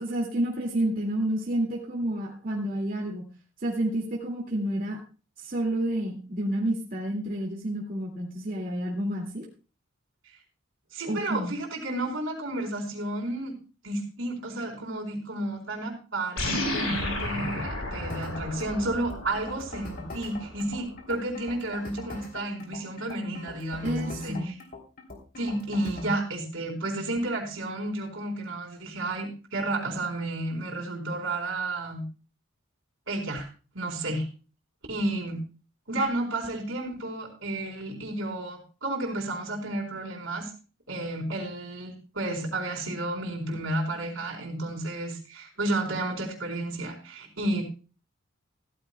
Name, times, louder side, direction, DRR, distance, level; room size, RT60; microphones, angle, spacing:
voice 1, 0.0-3.3 3.6-5.0 5.4-9.4 11.1-11.5 23.8-24.5, right 1 dB, 45° right, -3 dB, 2.3 m, -29 dB
voice 2, 10.9-13.5 13.8-24.5 25.4-32.0 33.1-33.5 33.7-34.3 34.9-35.4 35.9-40.5 40.9-47.6, right 2 dB, 75° right, 0 dB, 3.9 m, -31 dB
sound 1, 16.4-21.0, left 1 dB, 90° left, 7.2 m, -33 dB
sound 2, 18.1-26.1, left 2 dB, 45° left, 3.2 m, -42 dB
15.5 x 14.0 x 2.3 m, 0.35 s
head